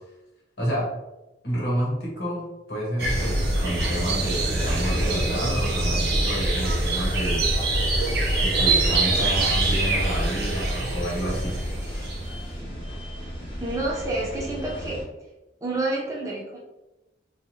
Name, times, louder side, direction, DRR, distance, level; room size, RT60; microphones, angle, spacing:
voice 1, 0.6-0.9 1.4-7.5 8.4-11.6, equal, 65° left, -4 dB, 1.0 m, -29 dB
sound 1, 3.0-12.4, right 2 dB, 60° right, 0.7 m, -24 dB
sound 2, 8.9-15.0, equal, 30° left, 0.7 m, -36 dB
voice 2, 13.6-15.0 15.6-16.6, right 2 dB, 20° right, -3 dB, 0.5 m, -28 dB
3.0 x 2.3 x 2.6 m, 1.0 s
head